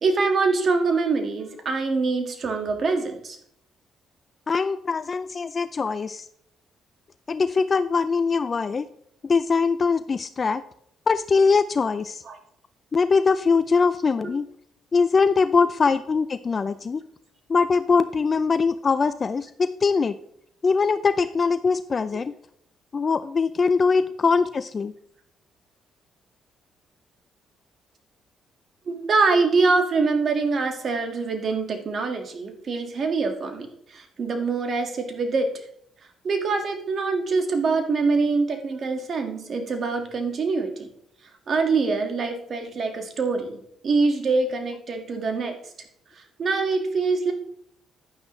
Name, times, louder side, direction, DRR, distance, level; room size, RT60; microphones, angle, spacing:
voice 1, 0.0-3.4 12.2-12.4 14.2-14.3 28.8-35.5 36.2-40.9 41.5-45.5 46.4-47.3, right 4 dB, 50° right, 5 dB, 1.8 m, -24 dB
voice 2, 4.5-6.3 7.3-8.9 9.2-10.6 11.1-12.2 12.9-14.5 14.9-17.0 17.5-20.2 20.6-22.3 22.9-24.9, left 4 dB, 35° left, 13 dB, 0.4 m, -22 dB
10.5 x 9.5 x 3.2 m, 0.70 s
cardioid pair, 90°, 0 cm